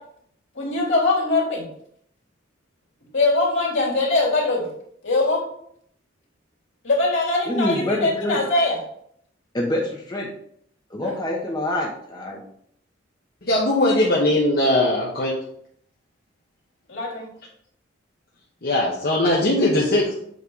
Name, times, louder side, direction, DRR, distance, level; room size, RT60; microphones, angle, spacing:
voice 1, 0.6-1.6 3.1-4.6 5.0-5.4 6.8-8.8 11.0-11.1 16.9-17.2, left 2 dB, 70° left, -4 dB, 2.9 m, -21 dB
voice 2, 7.4-8.4 9.5-10.3 10.9-12.4, left 1 dB, 20° left, -2 dB, 0.9 m, -26 dB
voice 3, 13.4-15.3 18.6-20.1, left 1 dB, 55° left, -4 dB, 1.3 m, -20 dB
7.7 x 3.3 x 5.4 m, 0.68 s
head